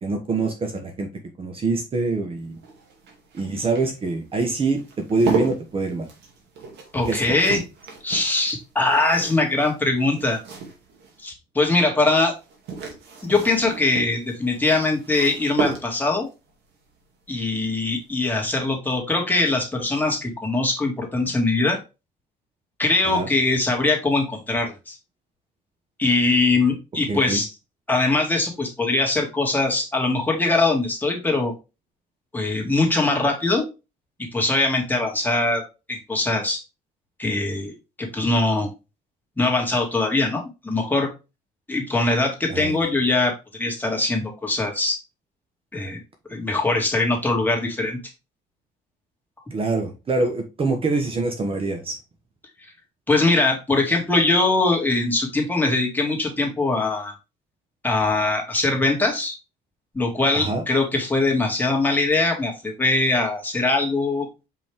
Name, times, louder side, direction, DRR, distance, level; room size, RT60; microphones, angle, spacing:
voice 1, 0.0-1.1 1.4-2.6 3.4-4.8 5.1-6.1 7.0-7.2 23.1-23.3 27.1-27.4 42.5-42.8 49.5-52.0 60.3-60.6, right 3 dB, 35° right, 1.2 m, -24 dB
sound 1, 2.4-11.2 12.3-16.3 17.9-18.2 18.5-18.6, right 4 dB, 80° right, 2.5 m, -34 dB
voice 2, 6.9-7.6 8.0-10.4 11.2-12.3 13.2-16.3 17.3-21.8 22.8-25.0 26.0-27.5 27.9-31.5 32.3-33.6 34.3-35.6 35.9-36.6 37.2-38.7 39.4-41.1 41.7-43.3 43.6-45.0 45.7-46.0 46.3-48.0 53.1-57.1 57.8-59.3 59.9-64.3, left 2 dB, 10° left, 2.5 m, -22 dB
5.4 x 5.3 x 3.6 m
cardioid pair, 110°, 17 cm